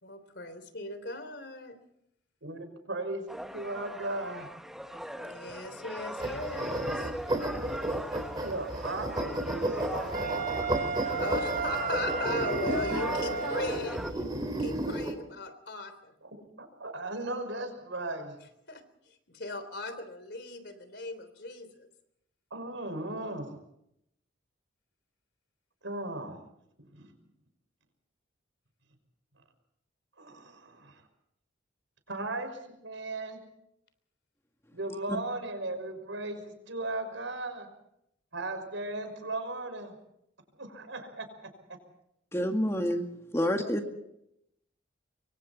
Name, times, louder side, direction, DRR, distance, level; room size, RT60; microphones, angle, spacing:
voice 1, 0.0-1.8 5.2-7.1 11.0-16.1 18.7-21.9 43.4-43.7, left 2 dB, 60° left, 10 dB, 3.5 m, -39 dB
voice 2, 2.4-3.3 3.5-4.5 8.4-10.3 16.3-18.4 22.5-23.5 25.8-26.4 26.9-27.1 30.2-31.0 32.1-33.4 34.7-37.7 38.3-39.9 40.6-41.3 43.8-43.9, right 2 dB, 80° right, 7 dB, 5.8 m, -37 dB
sound 1, 3.3-14.1, equal, ahead, 1.1 m, -41 dB
sound 2, 6.2-15.1, right 1 dB, 20° right, 4.0 m, -33 dB
Wind instrument woodwind instrument, 10.1-13.9, right 5 dB, 40° right, 1.5 m, -33 dB
voice 3, 42.3-43.1 43.3-44.0, equal, 15° left, 4 dB, 2.0 m, -28 dB
26.5 x 24.0 x 4.3 m, 0.77 s
head